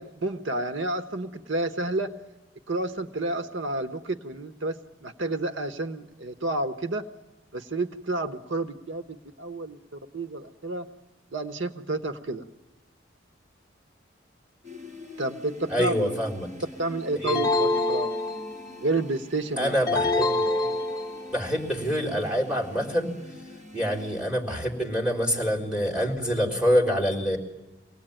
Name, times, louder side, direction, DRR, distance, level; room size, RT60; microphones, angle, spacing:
voice 1, 0.0-2.1 2.7-7.1 7.5-9.0 9.4-10.8 11.3-12.4 15.2-15.9 16.8-18.1 18.8-19.8, right 2 dB, 75° right, 9 dB, 1.1 m, -30 dB
sound 1, 14.6-24.2, left 1 dB, 35° right, 6.2 m, -45 dB
voice 2, 15.7-16.5 17.1-17.4 19.6-20.5 21.3-23.1 23.7-27.4, equal, 5° right, -1 dB, 4.1 m, -26 dB
sound 2, 17.3-18.8 19.9-21.4, left 2 dB, 15° left, 2.1 m, -26 dB
24.5 x 18.5 x 9.0 m, 1.1 s
head